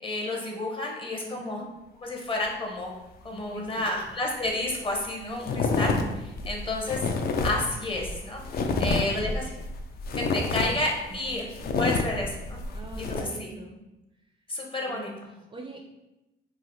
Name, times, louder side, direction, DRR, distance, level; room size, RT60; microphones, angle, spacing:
voice 1, 0.0-1.6 2.0-2.9 3.2-7.0 7.4-8.4 8.8-9.5 10.1-11.5 11.8-12.6 13.0-13.5 14.5-15.1, left 2 dB, 25° left, 0 dB, 0.7 m, -31 dB
voice 2, 1.2-1.7 3.3-4.0 5.2-5.5 8.6-9.3 11.1-11.4 12.7-13.8 14.9-15.8, right 2 dB, 25° right, 0 dB, 0.4 m, -43 dB
sound 1, 4.4-4.5 4.8-5.1 5.4-13.2, left 3 dB, 50° left, 0.4 m, -29 dB
3.1 x 2.5 x 2.6 m, 0.97 s
cardioid pair, 90°, 20 cm